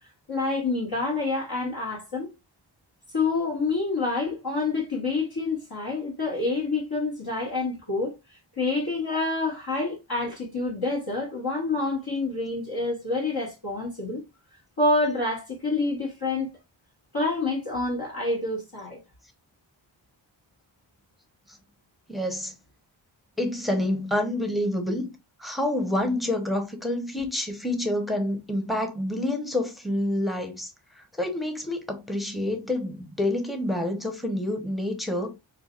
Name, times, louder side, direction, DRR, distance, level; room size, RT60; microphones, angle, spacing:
voice 1, 0.3-2.3 3.1-8.1 8.6-14.2 14.8-16.5 17.1-19.0, left 3 dB, 50° left, 1.5 m, -27 dB
voice 2, 22.1-22.5 23.4-25.1 25.4-35.3, left 1 dB, ahead, 0.9 m, -28 dB
5.7 x 2.3 x 2.4 m
wide cardioid pair, 45°, 47 cm